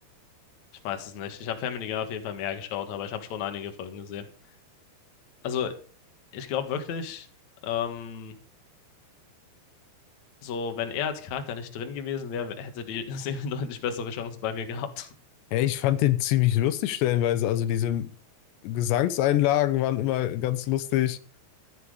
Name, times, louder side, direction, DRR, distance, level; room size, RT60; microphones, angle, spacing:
voice 1, 0.8-4.3 5.4-5.7 6.3-7.3 7.6-8.3 10.4-15.1, left 7 dB, 55° left, 7 dB, 2.4 m, -32 dB
voice 2, 15.5-18.1 18.6-21.2, left 13 dB, 85° left, 13 dB, 3.0 m, -24 dB
14.5 x 10.0 x 5.0 m, 0.40 s
omnidirectional pair, 5.0 m